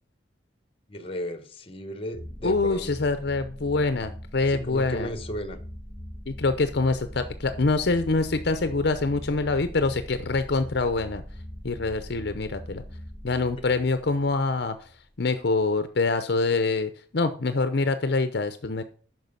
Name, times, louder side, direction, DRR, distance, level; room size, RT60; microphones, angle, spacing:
voice 1, 0.9-3.1 4.5-5.6, equal, 30° left, 10 dB, 1.1 m, -35 dB
sound 1, 2.1-15.0, equal, 10° right, 2.2 m, -41 dB
voice 2, 2.4-5.1 6.3-11.2 11.6-12.8 13.2-14.9 15.2-18.8, left 3 dB, 60° left, 10 dB, 0.7 m, -25 dB
9.3 x 6.1 x 5.4 m, 0.42 s
head